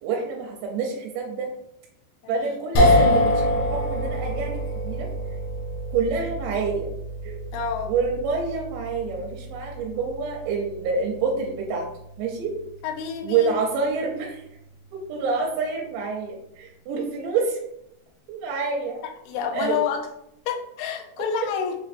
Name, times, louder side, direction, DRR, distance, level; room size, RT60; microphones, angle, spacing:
voice 1, 0.0-1.5 2.3-5.1 5.9-6.9 7.2-7.4 7.9-11.9 12.2-12.5 13.2-14.4 14.9-17.6 18.3-19.0 19.5-19.8, right 5 dB, 85° right, 0 dB, 2.9 m, -27 dB
voice 2, 2.2-2.6 7.5-7.9 12.8-13.6 19.0-20.0 20.5-21.8, left 7 dB, 85° left, 3 dB, 2.7 m, -29 dB
sound 1, 2.8-15.1, left 1 dB, 70° left, 2.3 m, -27 dB
7.4 x 2.6 x 2.6 m, 0.79 s
omnidirectional pair, 5.0 m